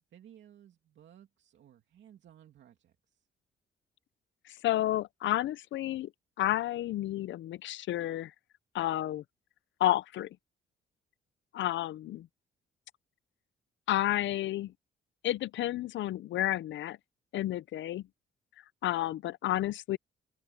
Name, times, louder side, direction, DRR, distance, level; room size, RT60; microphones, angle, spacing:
voice 1, 0.1-3.3, right 10 dB, 70° right, 2.5 m, -57 dB
voice 2, 4.6-6.1 6.4-8.3 8.7-9.2 9.8-10.3 11.5-12.3 13.9-14.7 15.2-17.0 17.3-18.0 18.8-20.0, left 14 dB, 70° left, 0.5 m, -31 dB
open air
cardioid pair, 90°, 20 cm